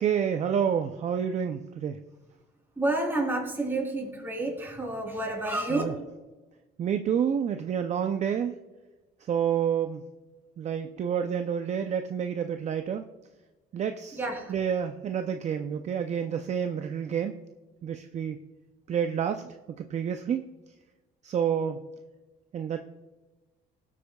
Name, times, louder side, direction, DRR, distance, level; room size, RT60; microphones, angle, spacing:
voice 1, 0.0-2.0 5.7-5.9 6.8-8.5 9.2-10.0 10.6-13.1 13.7-14.2 14.5-17.4 17.8-18.4 18.9-20.5 21.2-21.8 22.5-22.8, right 8 dB, 45° right, 7 dB, 0.6 m, -29 dB
voice 2, 2.8-5.8 14.1-14.6, right 2 dB, 10° right, -2 dB, 3.8 m, -29 dB
18.5 x 8.4 x 2.3 m, 1.2 s
cardioid pair, 110°, 17 cm